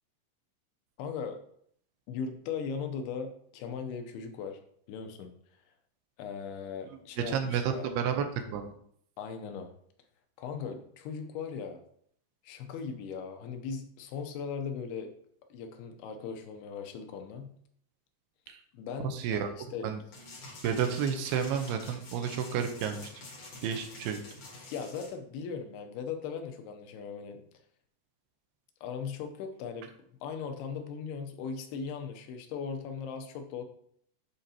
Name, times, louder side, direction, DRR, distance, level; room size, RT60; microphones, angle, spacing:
voice 1, 1.0-1.4 2.1-4.6 4.9-5.3 6.2-7.9 9.2-9.7 10.4-11.8 12.4-15.1 15.5-17.5 18.7-19.9 24.7-27.4 28.8-29.9 30.2-33.6, left 6 dB, 80° left, 6 dB, 2.6 m, -38 dB
voice 2, 6.9-8.2 8.5-8.7 18.5-18.6 19.0-19.5 19.8-20.0 20.6-23.1 23.6-24.2, right 7 dB, 85° right, 6 dB, 2.7 m, -31 dB
sound 1, 20.1-25.1, left 2 dB, 60° left, 1.4 m, -47 dB
11.5 x 4.5 x 2.8 m, 0.64 s
omnidirectional pair, 4.8 m